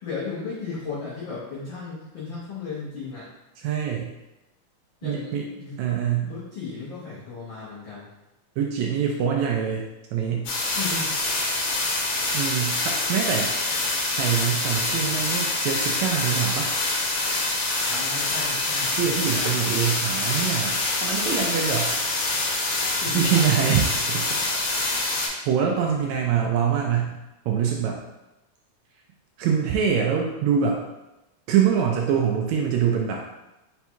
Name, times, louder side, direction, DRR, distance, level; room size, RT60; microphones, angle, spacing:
voice 1, 0.0-3.3 5.0-5.7 6.0-8.1 10.8-11.1 17.8-19.7 23.0-23.6, left 4 dB, 90° left, -8 dB, 1.0 m, -35 dB
voice 2, 3.6-4.1 5.0-5.5 5.8-6.3 8.6-9.9 10.1-10.5 12.3-13.5 14.1-16.7 18.9-22.0 23.1-24.3 24.6-25.2 25.5-27.2 27.4-28.0 29.4-30.8 31.5-33.2, right 8 dB, 80° right, 1 dB, 1.7 m, -24 dB
sound 1, 10.5-25.3, left 2 dB, 65° left, 2.0 m, -25 dB
5.3 x 2.3 x 4.4 m, 0.98 s
omnidirectional pair, 3.6 m